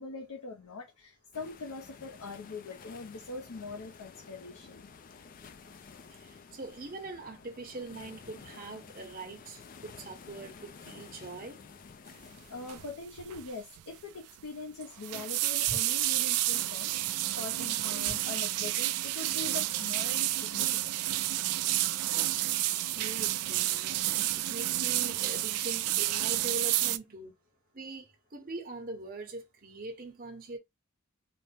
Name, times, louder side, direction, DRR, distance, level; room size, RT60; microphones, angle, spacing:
voice 1, 0.0-4.9 12.5-21.0, left 3 dB, 80° left, 0.6 m, -42 dB
sound 1, 1.3-12.9, left 5 dB, 40° left, 0.3 m, -51 dB
voice 2, 6.1-11.6 15.7-15.8 18.1-18.2 22.1-27.3 27.7-30.6, right 2 dB, 40° right, 1.0 m, -42 dB
sound 2, 12.7-12.9 13.2-13.5 13.8-13.9 14.8-27.0, right 15 dB, 85° right, 0.3 m, -30 dB
4.1 x 2.1 x 3.3 m
head